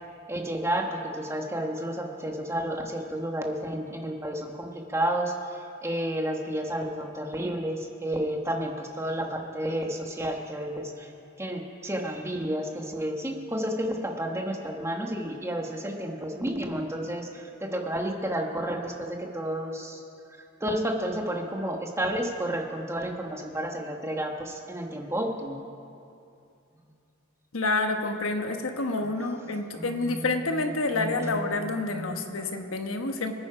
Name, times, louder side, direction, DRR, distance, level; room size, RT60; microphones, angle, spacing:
voice 1, 0.3-11.1 11.4-20.0 20.4-25.6 29.2-29.3 29.7-30.3 30.9-32.2, right 1 dB, 15° right, 2 dB, 1.2 m, -31 dB
voice 2, 27.5-33.3, left 2 dB, 80° left, 5 dB, 1.2 m, -28 dB
26.5 x 9.4 x 5.0 m, 2.6 s
head